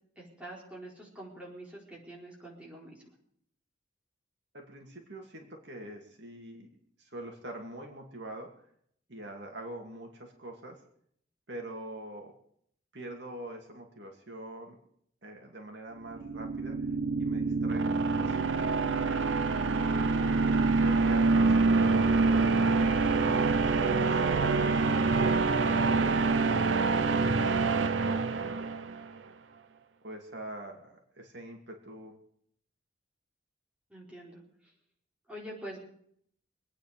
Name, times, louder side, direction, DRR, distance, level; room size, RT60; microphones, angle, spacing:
voice 1, 0.2-3.0 33.9-34.4 35.3-35.8, right 1 dB, 5° right, -4 dB, 4.4 m, -45 dB
voice 2, 4.5-6.7 7.0-8.5 9.1-10.8 11.5-12.3 12.9-14.8 15.2-16.8 17.2-18.9 19.6-23.5 23.8-24.2 24.5-26.4 27.0-28.8 30.0-32.2, right 1 dB, 65° right, 1 dB, 2.6 m, -44 dB
sound 1, 16.1-29.0, right 4 dB, 80° right, 0.7 m, -26 dB
25.5 x 9.4 x 5.1 m, 0.66 s
head